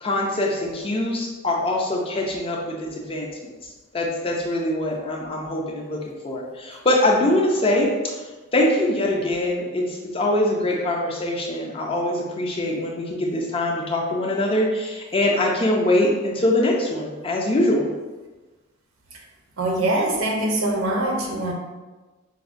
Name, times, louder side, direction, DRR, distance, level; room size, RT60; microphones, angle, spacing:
voice 1, 0.0-3.5 3.9-7.9 8.5-17.9, left 1 dB, 25° left, -1 dB, 0.4 m, -23 dB
voice 2, 19.6-21.5, right 1 dB, 75° right, 0 dB, 0.6 m, -23 dB
4.6 x 2.1 x 2.5 m, 1.2 s
head